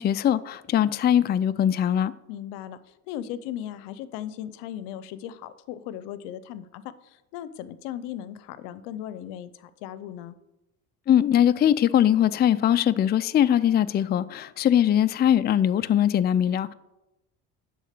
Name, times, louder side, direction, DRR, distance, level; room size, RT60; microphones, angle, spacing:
voice 1, 0.0-2.1 11.1-16.7, left 10 dB, 25° left, 13 dB, 0.4 m, -21 dB
voice 2, 2.3-2.8 3.1-10.3, left 11 dB, 80° left, 15 dB, 0.7 m, -37 dB
10.5 x 3.9 x 6.6 m, 0.96 s
supercardioid pair, 75°, 40 cm